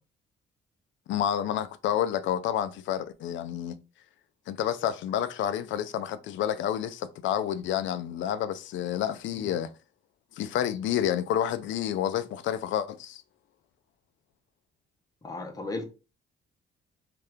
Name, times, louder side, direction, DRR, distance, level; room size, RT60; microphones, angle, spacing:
voice 1, 1.1-3.8 4.5-9.7 10.3-13.2, left 10 dB, 75° left, 0.4 m, -29 dB
voice 2, 15.2-15.8, left 2 dB, 20° left, 0.7 m, -35 dB
2.8 x 2.4 x 3.4 m
cardioid pair, 90°, 20 cm